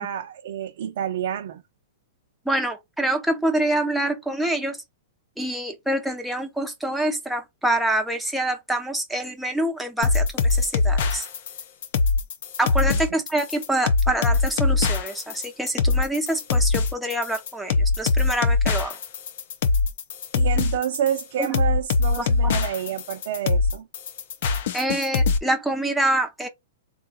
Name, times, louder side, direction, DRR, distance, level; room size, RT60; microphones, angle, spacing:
voice 1, 0.0-1.6 12.9-13.0 20.3-23.9, right 10 dB, 55° right, 0.5 m, -28 dB
voice 2, 2.5-4.8 5.4-11.2 12.6-18.9 21.4-21.5 22.2-22.6 24.7-26.5, right 1 dB, ahead, 0.6 m, -26 dB
sound 1, 10.0-25.4, left 4 dB, 55° left, 0.6 m, -22 dB
3.7 x 2.3 x 3.9 m
hypercardioid pair, 160°, 0 cm